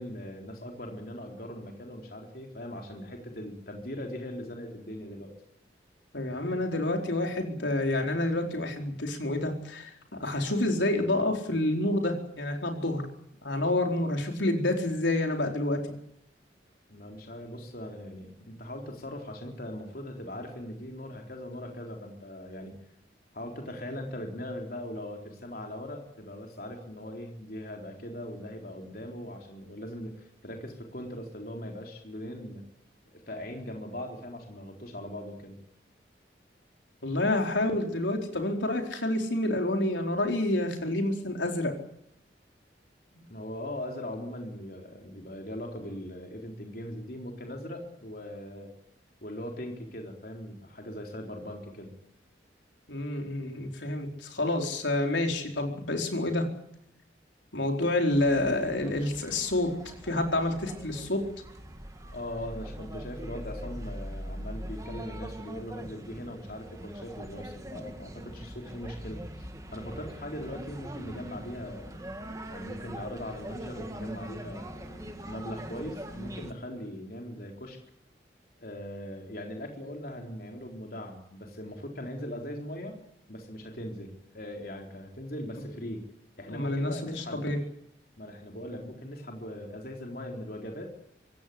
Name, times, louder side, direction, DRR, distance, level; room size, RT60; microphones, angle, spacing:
voice 1, 0.0-5.4 16.9-22.8 23.3-32.6 33.1-35.6 43.1-48.7 49.2-52.0 62.1-72.0 72.5-77.8 78.6-83.0 83.3-86.0 86.4-87.4 88.2-90.9, left 1 dB, 55° left, 2 dB, 4.0 m, -40 dB
voice 2, 6.1-9.9 10.2-13.0 13.4-15.8 37.0-41.7 52.9-56.5 57.5-59.7 60.0-61.2 86.5-87.6, left 1 dB, 90° left, 3 dB, 4.6 m, -28 dB
sound 1, 58.1-76.5, equal, 20° right, 2.0 m, -42 dB
25.0 x 16.5 x 8.7 m, 0.75 s
head